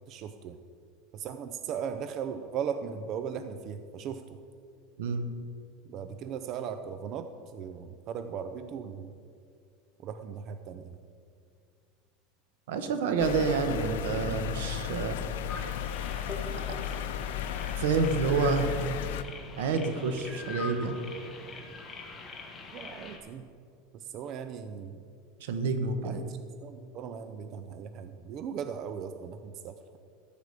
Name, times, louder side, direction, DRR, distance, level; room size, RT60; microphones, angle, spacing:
voice 1, 0.1-0.6 1.1-4.2 5.9-9.1 10.0-11.0 22.7-23.5 23.9-25.0 26.0-30.0, right 7 dB, 40° right, 9 dB, 0.5 m, -38 dB
voice 2, 12.7-15.2 17.8-18.8 19.6-21.0 25.4-26.2, right 4 dB, 80° right, 8 dB, 1.2 m, -28 dB
sound 1, 13.2-19.2, left 10 dB, 80° left, 0.7 m, -34 dB
sound 2, 15.5-23.2, left 3 dB, 20° left, 1.4 m, -43 dB
14.0 x 5.0 x 8.1 m, 2.3 s
supercardioid pair, 145°, 0 cm